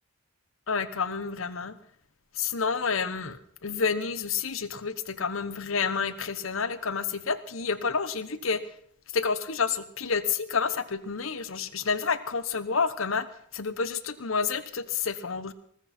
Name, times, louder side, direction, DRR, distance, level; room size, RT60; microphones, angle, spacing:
voice 1, 0.7-1.7 2.4-8.6 9.1-13.3 13.5-15.5, left 5 dB, 70° left, 14 dB, 1.0 m, -29 dB
20.0 x 14.5 x 4.3 m, 0.64 s
head